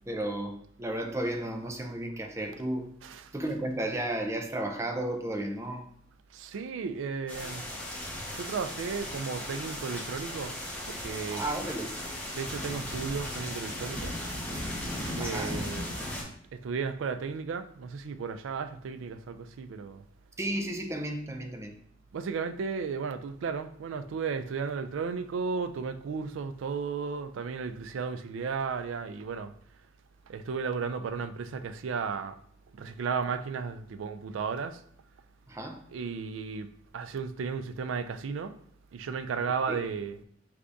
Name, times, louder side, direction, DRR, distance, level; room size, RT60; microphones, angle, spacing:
voice 1, 0.1-2.9 3.3-5.8 11.3-12.0 15.2-15.6 20.4-21.7 35.5-35.8 39.7-39.8, right 1 dB, 15° right, 0.5 m, -33 dB
voice 2, 6.3-7.6 8.3-10.5 10.9-11.4 12.4-14.1 15.1-15.8 16.6-20.0 22.1-29.5 30.3-32.4 32.8-34.8 35.9-36.7 36.9-38.5 38.9-40.2, right 5 dB, 80° right, 0.3 m, -34 dB
sound 1, 7.3-16.2, left 1 dB, 5° left, 1.1 m, -37 dB
4.7 x 3.3 x 2.6 m
head